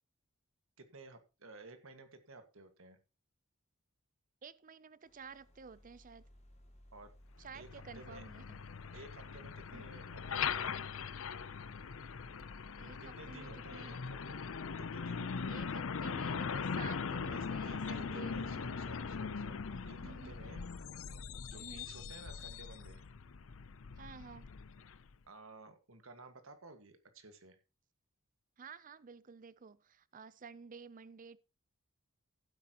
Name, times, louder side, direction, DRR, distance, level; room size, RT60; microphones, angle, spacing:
voice 1, 0.8-3.0 6.9-7.1 7.5-8.2 8.9-10.8 12.8-14.4 14.8-15.6 17.3-20.6 21.5-23.0 25.3-27.6, right 2 dB, 70° right, 1.8 m, -54 dB
voice 2, 4.4-6.2 7.4-8.6 9.7-9.9 12.8-13.9 15.5-18.7 20.0-20.3 21.5-21.9 24.0-24.5 28.6-31.4, right 5 dB, 40° right, 0.5 m, -52 dB
sound 1, 5.0-21.1, equal, 30° left, 2.3 m, -58 dB
Truck, 7.5-25.1, left 5 dB, 70° left, 0.6 m, -41 dB
15.0 x 8.5 x 3.0 m
head